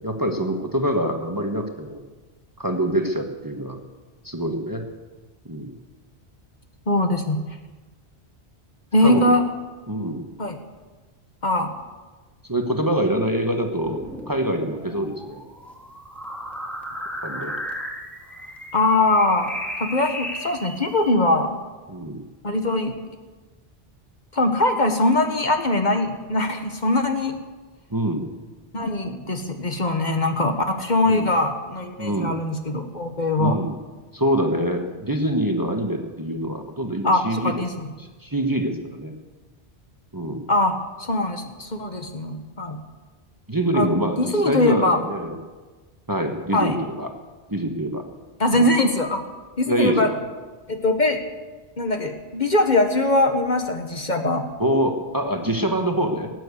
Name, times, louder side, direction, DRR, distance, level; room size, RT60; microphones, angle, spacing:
voice 1, 0.0-2.0 2.6-3.8 4.2-4.8 5.5-5.7 9.0-9.3 9.9-10.2 12.5-15.4 17.2-17.6 21.9-22.2 27.9-28.3 31.0-31.3 32.0-32.3 33.4-33.8 34.1-37.6 38.0-39.1 40.1-40.4 43.5-45.4 46.1-47.1 47.5-48.0 48.5-48.7 49.7-50.2 54.6-56.3, right 1 dB, 20° right, 4 dB, 1.3 m, -25 dB
voice 2, 6.9-7.4 8.9-9.4 10.4-10.6 11.4-11.7 18.7-19.5 19.8-21.6 22.4-22.9 24.3-27.4 28.7-33.6 37.0-37.9 40.5-42.8 43.7-43.9 44.2-45.0 46.5-46.8 48.4-49.2 49.6-50.1 50.7-51.2 51.8-54.4, left 2 dB, 45° left, 5 dB, 1.3 m, -21 dB
sound 1, 13.7-21.1, equal, ahead, 2.1 m, -35 dB
18.0 x 9.5 x 8.2 m, 1.3 s
omnidirectional pair, 1.1 m